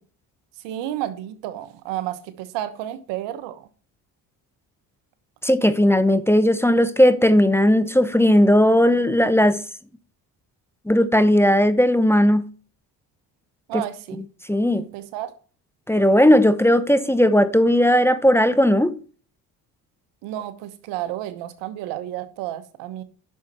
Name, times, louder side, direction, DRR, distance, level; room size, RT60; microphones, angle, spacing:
voice 1, 0.6-3.7 13.7-14.2 14.7-15.3 20.2-23.0, right 13 dB, 85° right, 1.2 m, -31 dB
voice 2, 5.4-9.6 10.9-12.4 13.7-13.8 14.5-14.8 15.9-18.9, equal, 5° left, 0.8 m, -17 dB
10.5 x 6.5 x 4.3 m
supercardioid pair, 85°, 42 cm